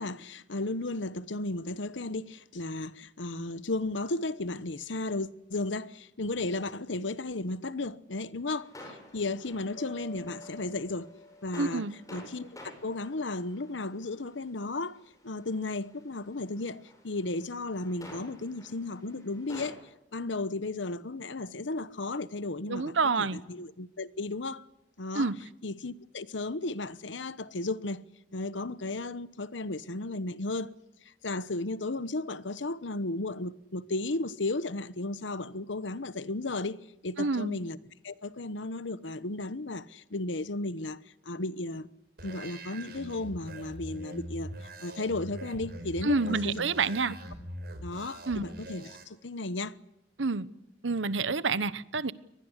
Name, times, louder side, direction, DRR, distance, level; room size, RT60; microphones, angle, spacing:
voice 1, 0.0-11.1 11.4-15.0 15.2-19.8 20.1-24.7 25.0-25.3 25.6-28.0 28.3-30.7 31.2-37.8 38.0-41.0 41.2-41.9 42.2-46.6 47.8-49.8, left 2 dB, 80° left, 1.1 m, -34 dB
sound 1, 8.5-19.7, left 1 dB, 20° left, 7.8 m, -51 dB
sound 2, 9.8-12.9, left 2 dB, 45° left, 2.6 m, -50 dB
voice 2, 11.6-11.9 22.7-23.4 25.1-25.4 37.2-37.6 46.0-47.1 48.3-48.4 50.2-50.5 50.8-52.1, right 4 dB, 90° right, 1.0 m, -28 dB
sound 3, 42.2-49.0, right 1 dB, 55° right, 4.6 m, -43 dB
24.5 x 20.0 x 8.2 m
head